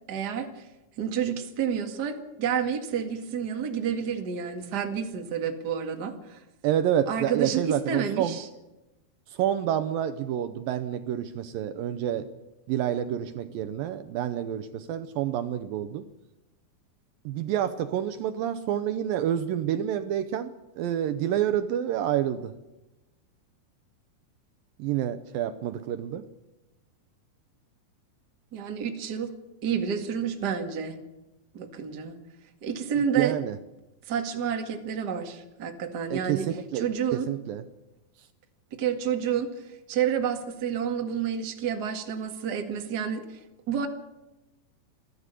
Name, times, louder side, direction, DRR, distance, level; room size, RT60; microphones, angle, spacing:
voice 1, 0.1-0.7 1.0-6.4 7.1-8.5 28.5-29.3 29.6-31.0 31.5-32.2 32.6-33.4 34.1-36.5 36.7-37.3 38.7-43.4 43.7-43.9, right 7 dB, 35° right, 5 dB, 1.7 m, -29 dB
voice 2, 6.6-8.4 9.3-12.3 12.7-16.1 17.3-22.5 24.8-26.2 33.2-33.6 36.1-37.6, right 10 dB, 75° right, 10 dB, 2.3 m, -28 dB
28.0 x 11.0 x 8.3 m, 1.0 s
omnidirectional pair, 4.5 m